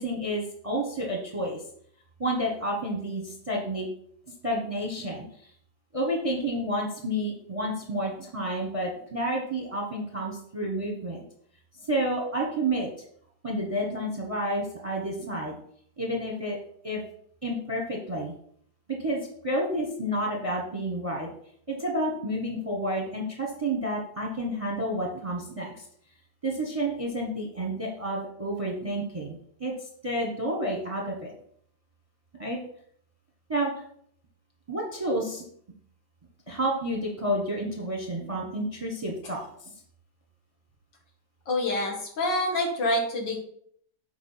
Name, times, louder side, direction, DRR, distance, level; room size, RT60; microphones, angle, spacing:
voice 1, 0.0-1.6 2.2-3.8 4.4-5.2 5.9-11.2 11.9-12.9 13.4-15.5 16.0-16.6 16.8-17.0 17.4-18.3 19.0-19.2 19.4-21.3 21.8-25.7 26.4-29.3 29.6-29.7 30.0-31.3 32.4-32.6 33.5-33.7 34.7-35.4 36.5-39.4, right 1 dB, 20° right, 0 dB, 1.0 m, -30 dB
voice 2, 41.5-43.4, left 1 dB, 60° left, 1 dB, 2.3 m, -27 dB
7.1 x 4.8 x 5.6 m, 0.65 s
omnidirectional pair, 2.2 m